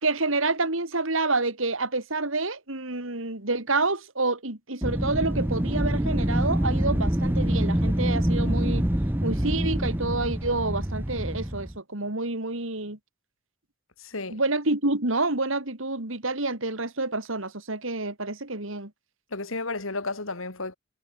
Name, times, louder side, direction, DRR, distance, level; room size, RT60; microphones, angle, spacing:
voice 1, 0.0-8.8 9.2-13.0 14.3-18.9, right 3 dB, 65° right, 3.5 m, -28 dB
Wind, 4.8-11.8, equal, 10° right, 0.9 m, -26 dB
voice 2, 14.0-14.4 19.3-20.8, left 3 dB, 70° left, 2.8 m, -32 dB
head